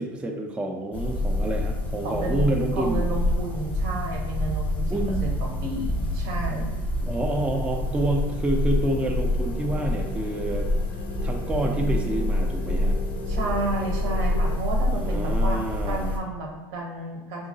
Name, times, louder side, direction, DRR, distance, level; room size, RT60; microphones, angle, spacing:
voice 1, 0.0-3.1 4.9-5.2 7.1-10.7 11.2-13.0 14.9-16.1, right 1 dB, 10° right, 2 dB, 0.3 m, -28 dB
sound 1, 0.9-16.2, left 1 dB, 15° left, 0.7 m, -27 dB
voice 2, 2.0-6.8 13.3-17.5, right 2 dB, 70° right, 1 dB, 0.9 m, -32 dB
sound 2, 6.8-14.6, left 4 dB, 65° left, 0.5 m, -40 dB
3.8 x 2.7 x 2.7 m, 1.2 s
supercardioid pair, 110°, 11 cm